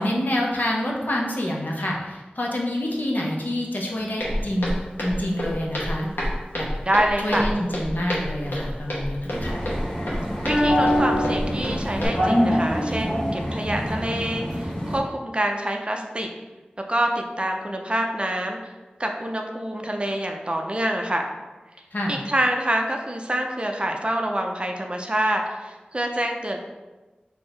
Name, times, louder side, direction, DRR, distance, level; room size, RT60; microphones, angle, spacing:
voice 1, 0.0-4.7 5.0-6.1 6.5-6.7 7.2-9.6 21.9-22.2, left 1 dB, 65° left, -2 dB, 0.8 m, -27 dB
Walk footsteps, 4.2-12.1, equal, 90° left, 1.0 m, -30 dB
voice 2, 6.8-7.5 10.4-16.3 16.9-18.7 19.0-21.2 22.1-26.6, right 1 dB, 30° right, 2 dB, 0.5 m, -26 dB
sound 1, 9.3-15.0, equal, 20° left, 1.2 m, -24 dB
4.4 x 2.7 x 3.2 m, 1.2 s
wide cardioid pair, 55°, 3 cm